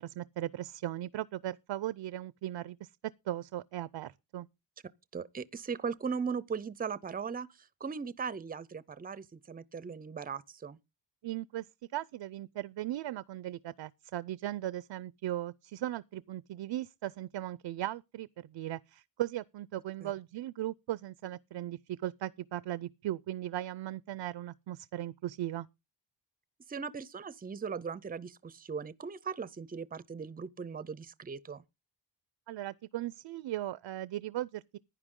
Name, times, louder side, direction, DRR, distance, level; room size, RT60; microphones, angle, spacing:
voice 1, 0.0-2.9 3.3-4.5 11.2-11.7 11.9-25.7 32.5-34.8, right 13 dB, 70° right, 0.6 m, -38 dB
voice 2, 5.1-10.8 20.0-20.1 26.7-31.6, right 6 dB, 20° right, 0.6 m, -38 dB
15.0 x 10.5 x 3.7 m
wide cardioid pair, 160°, 45 cm